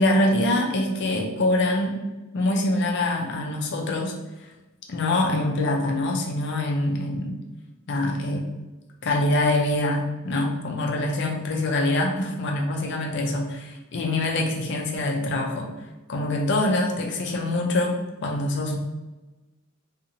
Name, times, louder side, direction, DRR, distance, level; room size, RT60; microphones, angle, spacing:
voice 1, 0.0-2.0 2.3-4.2 4.9-7.4 7.9-8.4 9.0-15.7 16.1-17.9 18.2-18.8, left 1 dB, 55° left, 1 dB, 0.5 m, -24 dB
2.6 x 2.5 x 2.8 m, 1.1 s
head